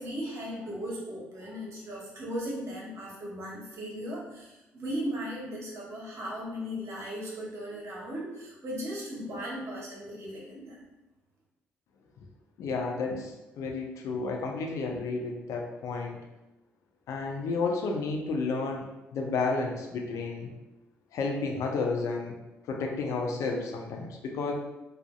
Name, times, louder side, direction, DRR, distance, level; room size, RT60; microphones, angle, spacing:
voice 1, 0.0-10.9, equal, 55° right, -4 dB, 0.9 m, -37 dB
voice 2, 12.6-16.2 17.1-20.5 21.1-22.4 22.7-24.5, left 4 dB, 70° left, 1 dB, 0.4 m, -31 dB
2.5 x 2.4 x 2.3 m, 0.98 s
hypercardioid pair, 50°, 6 cm